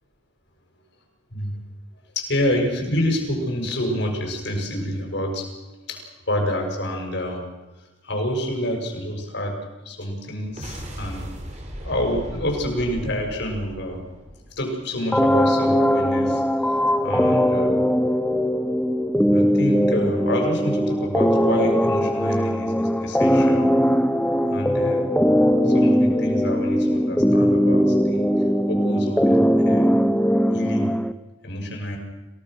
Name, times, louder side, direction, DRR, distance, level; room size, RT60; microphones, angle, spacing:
voice 1, 2.1-5.5 5.9-6.0 6.3-7.4 7.8-9.6 9.8-11.2 11.8-14.1 14.6-17.8 19.3-23.7 24.5-25.0 25.6-28.3 28.7-30.0 30.5-30.9 31.4-32.0, equal, 60° left, 2 dB, 6.5 m, -28 dB
sound 1, 10.4-15.0, equal, 35° right, 3.9 m, -37 dB
sound 2, 15.1-31.1, equal, 5° left, 0.8 m, -20 dB
28.5 x 18.0 x 6.5 m, 1.1 s
head